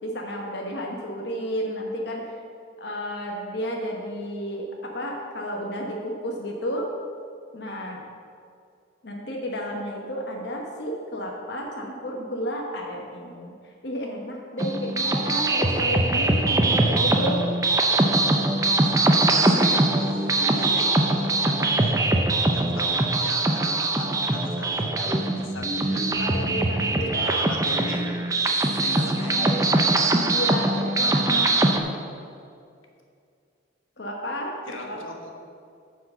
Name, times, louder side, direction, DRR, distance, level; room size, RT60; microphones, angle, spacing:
voice 1, 0.0-2.3 2.8-6.8 7.5-8.0 9.0-17.4 22.6-22.7 26.2-27.4 29.1-29.6 30.3-31.5 34.0-34.5 34.8-35.0, equal, 55° left, -1 dB, 1.0 m, -32 dB
sound 1, 14.6-31.8, right 2 dB, 15° right, 0.5 m, -22 dB
voice 2, 18.1-19.0 19.3-22.0 22.5-26.2 27.2-29.7 31.0-31.9 34.7-35.3, left 1 dB, 85° left, 1 dB, 1.3 m, -38 dB
9.9 x 4.7 x 6.7 m, 2.4 s
head